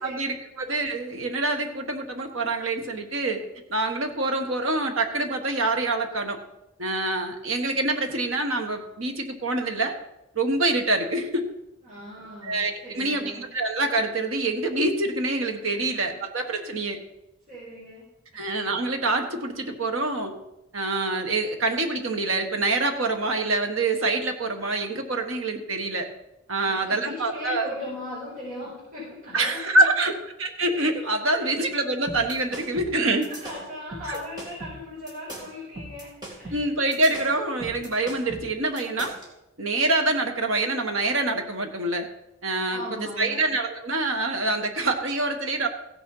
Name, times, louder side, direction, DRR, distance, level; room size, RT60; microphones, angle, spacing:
voice 1, 0.0-3.4 3.7-6.4 6.8-9.9 10.3-11.4 12.4-17.0 18.3-20.3 20.7-26.1 26.5-27.7 29.3-30.1 30.4-33.3 34.1-34.2 36.5-39.1 39.6-42.1 42.4-45.7, right 2 dB, 70° right, 5 dB, 1.4 m, -26 dB
voice 2, 11.8-13.4 15.7-16.2 16.5-16.8 17.5-18.1 18.3-18.4 26.6-29.8 31.4-31.5 33.1-36.1 36.4-36.6 42.7-43.4, left 1 dB, 40° right, -9 dB, 4.9 m, -38 dB
sound 1, 32.1-39.3, right 1 dB, 20° right, 2.7 m, -39 dB
15.5 x 6.4 x 5.6 m, 0.93 s
head